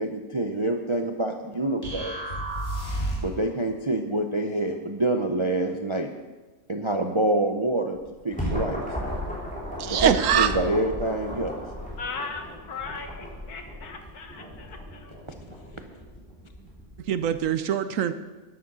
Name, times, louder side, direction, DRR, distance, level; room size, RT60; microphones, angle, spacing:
voice 1, 0.0-2.2 3.2-6.1 6.7-8.0 8.2-8.8 9.9-11.6, right 2 dB, 40° right, 5 dB, 0.4 m, -26 dB
sound 1, 1.8-3.4, right 1 dB, 40° left, 4.3 m, -30 dB
sound 2, 7.9-17.4, left 1 dB, 5° left, 3.3 m, -35 dB
voice 2, 9.8-10.6 17.1-18.1, right 8 dB, 65° right, 11 dB, 1.0 m, -23 dB
voice 3, 12.0-15.2, left 4 dB, 85° left, 4 dB, 2.0 m, -38 dB
11.5 x 9.6 x 6.1 m, 1.2 s
omnidirectional pair, 1.6 m